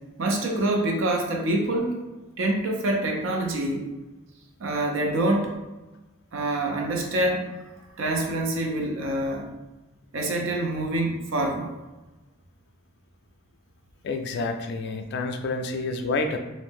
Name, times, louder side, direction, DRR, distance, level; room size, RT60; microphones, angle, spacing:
voice 1, 0.2-1.9 2.4-3.8 4.6-5.6 6.3-7.5 8.0-9.5 10.1-11.7, right 1 dB, 65° right, 2 dB, 0.5 m, -26 dB
voice 2, 14.0-16.4, left 3 dB, 55° left, 6 dB, 0.3 m, -28 dB
2.5 x 2.1 x 3.4 m, 1.1 s
head